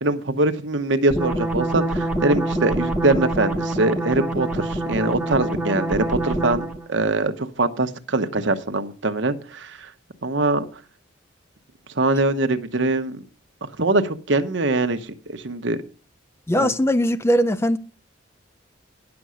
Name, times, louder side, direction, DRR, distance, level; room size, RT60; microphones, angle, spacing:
voice 1, 0.0-9.9 10.2-10.6 11.9-13.2 13.6-15.8 16.5-16.7, right 2 dB, 65° right, 1.0 m, -23 dB
sound 1, 1.1-6.9, right 1 dB, 5° right, 1.0 m, -25 dB
voice 2, 16.5-17.8, equal, 15° left, 0.4 m, -20 dB
10.5 x 7.0 x 6.3 m
head